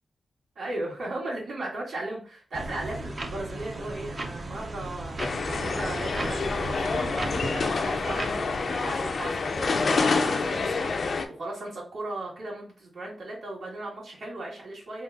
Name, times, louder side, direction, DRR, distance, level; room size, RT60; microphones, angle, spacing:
voice 1, 0.6-7.1 7.5-15.0, right 2 dB, 70° right, -5 dB, 1.7 m, -37 dB
sound 1, 2.5-9.3, right 2 dB, 30° right, 0.4 m, -36 dB
sound 2, 5.2-11.3, left 4 dB, 50° left, 0.4 m, -27 dB
3.4 x 2.2 x 3.9 m, 0.43 s
wide cardioid pair, 175°, 0 cm